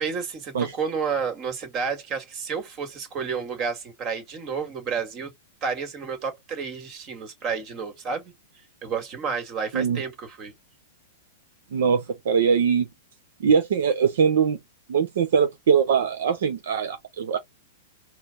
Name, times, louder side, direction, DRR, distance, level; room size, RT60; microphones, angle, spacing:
voice 1, 0.0-5.3 5.6-8.3 8.8-10.5, right 6 dB, 35° right, 2.0 m, -30 dB
voice 2, 11.7-12.9 13.4-14.6 14.9-17.4, right 6 dB, 70° right, 1.0 m, -22 dB
4.4 x 2.3 x 3.7 m
hypercardioid pair, 125°, 0 cm